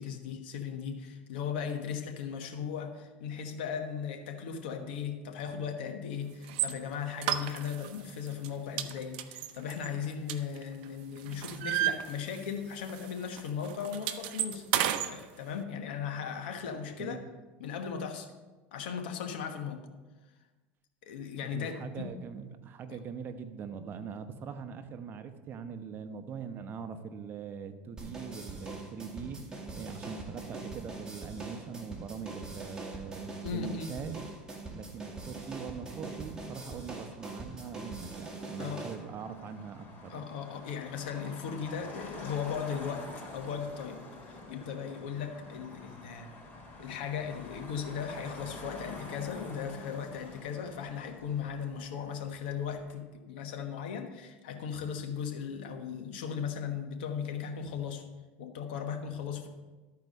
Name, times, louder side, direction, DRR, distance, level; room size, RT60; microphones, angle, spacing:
voice 1, 0.0-14.7 15.0-17.2 17.6-18.3 18.7-19.9 21.1-22.1 33.4-34.0 38.6-38.9 40.1-43.1 43.3-44.0 44.3-46.4 46.8-58.0 58.4-59.5, left 7 dB, 85° left, 5 dB, 1.2 m, -37 dB
sound 1, 6.5-6.7 7.2-7.9 8.3-8.5 8.8-10.8 11.2-12.6 12.9-13.1 13.4-15.1, right 12 dB, 75° right, 0.6 m, -32 dB
voice 2, 21.4-29.4 29.7-34.2 34.7-40.3, right 6 dB, 40° right, 8 dB, 0.9 m, -42 dB
sound 2, 28.0-38.9, right 2 dB, 15° right, 2.2 m, -43 dB
Motor vehicle (road), 34.3-52.9, left 2 dB, 35° left, 3.0 m, -48 dB
13.0 x 4.7 x 5.4 m, 1.2 s
supercardioid pair, 100°, 5 cm